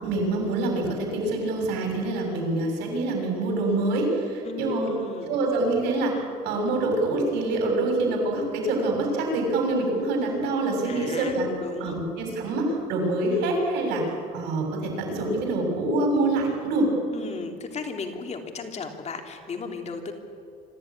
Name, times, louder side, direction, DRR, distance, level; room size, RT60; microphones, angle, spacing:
voice 1, 0.0-4.9 5.3-6.1 6.4-11.5 11.8-14.0 14.3-16.9, right 2 dB, 90° right, 1 dB, 7.1 m, -25 dB
voice 2, 4.4-5.3 10.8-12.0 17.1-20.1, left 4 dB, 40° left, 4 dB, 3.2 m, -35 dB
26.0 x 15.0 x 9.9 m, 2.5 s
cardioid pair, 110°, 17 cm